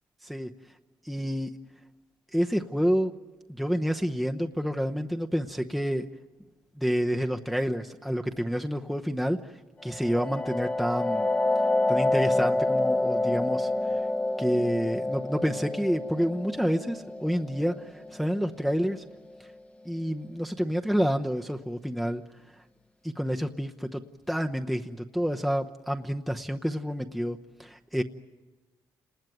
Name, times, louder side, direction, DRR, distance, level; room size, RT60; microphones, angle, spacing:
voice 1, 1.0-1.5 2.3-3.1 3.5-6.1 6.8-9.5 9.8-11.3 11.9-14.0 14.4-19.0 19.8-22.2 23.0-24.0 24.3-28.0, equal, ahead, 3 dB, 0.9 m, -28 dB
sound 1, 9.9-19.3, left 2 dB, 20° left, 1.1 m, -28 dB
29.0 x 20.0 x 9.3 m, 1.2 s
cardioid pair, 120°, 7 cm